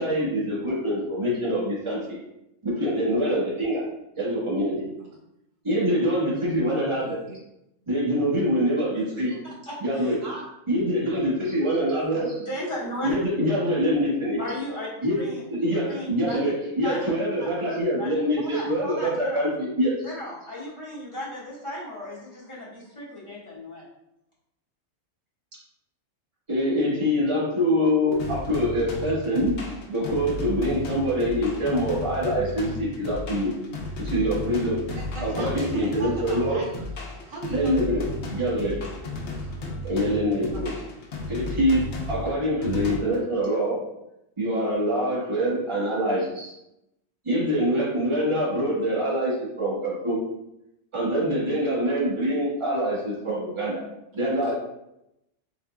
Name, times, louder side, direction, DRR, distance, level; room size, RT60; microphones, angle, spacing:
voice 1, 0.0-2.1 2.6-3.8 4.1-4.8 5.6-7.2 7.9-9.4 9.8-10.2 10.7-12.5 13.0-14.4 15.0-15.2 15.5-20.0 26.5-29.6 29.9-33.5 34.0-34.8 35.2-36.6 37.5-38.0 38.3-38.8 39.8-40.8 41.3-43.8 44.4-46.5 47.2-50.2 50.9-53.8 54.1-54.5, equal, 25° right, -7 dB, 1.3 m, -25 dB
voice 2, 7.0-7.4 9.3-9.4 10.2-10.4 12.4-12.6 34.9-36.9 37.2-37.8 39.3-39.6 40.5-40.7 54.5-54.6, right 3 dB, 85° right, -1 dB, 1.1 m, -39 dB
voice 3, 9.7-10.1 12.4-13.1 14.4-14.9 15.2-15.4 15.9-16.4 16.8-17.0 17.4-17.5 18.0-19.4 20.0-23.8, left 1 dB, 25° left, -9 dB, 1.4 m, -36 dB
sound 1, 28.2-43.0, left 1 dB, 65° left, 0.9 m, -34 dB
4.0 x 3.6 x 2.2 m, 0.85 s
omnidirectional pair, 1.3 m